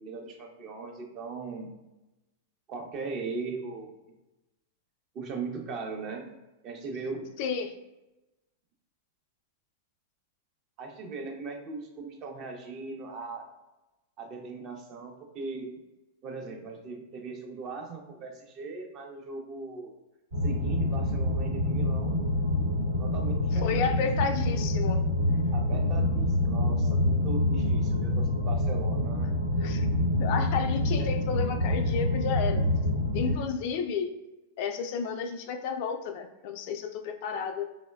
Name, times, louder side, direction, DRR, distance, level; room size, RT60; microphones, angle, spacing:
voice 1, 0.0-1.7 2.7-3.9 5.1-6.3 6.6-7.3 10.8-13.5 14.2-15.7 16.2-19.9 20.4-22.2 23.0-24.1 25.5-29.3 30.9-31.2, right 4 dB, 40° right, 2 dB, 0.6 m, -39 dB
voice 2, 7.4-7.7 23.5-25.0 29.6-29.9 30.2-32.6 33.1-34.1 34.6-37.6, left 6 dB, 55° left, 6 dB, 0.3 m, -31 dB
sound 1, 20.3-33.3, left 1 dB, 70° right, 0.9 m, -26 dB
3.7 x 2.1 x 2.2 m, 1.0 s
hypercardioid pair, 110°, 0 cm